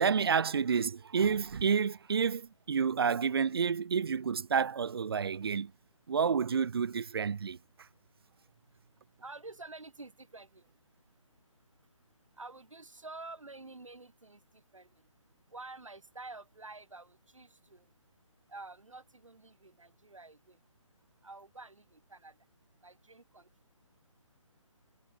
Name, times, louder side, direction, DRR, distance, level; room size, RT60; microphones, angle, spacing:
voice 1, 0.0-5.7 6.1-7.6, right 6 dB, 50° right, 0.6 m, -29 dB
voice 2, 9.2-10.6 12.4-14.9 15.5-17.8 18.5-20.6 21.2-22.3 22.8-23.5, right 3 dB, 75° right, 5.7 m, -49 dB
figure-of-eight pair, 145°, 17 cm